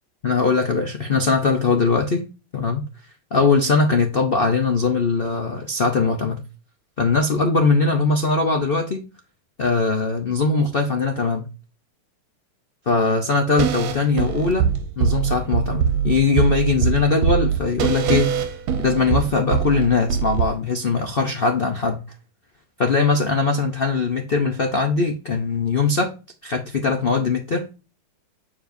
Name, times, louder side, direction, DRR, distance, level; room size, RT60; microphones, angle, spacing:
voice 1, 0.2-2.2 2.5-2.9 3.3-6.4 7.0-9.0 9.6-11.4 12.9-14.7 15.0-18.4 18.8-22.0 22.8-26.1 26.4-27.7, left 4 dB, 80° left, 0.5 m, -20 dB
sound 1, 13.6-20.4, right 7 dB, 80° right, 1.7 m, -22 dB
7.6 x 6.9 x 2.7 m
omnidirectional pair, 2.3 m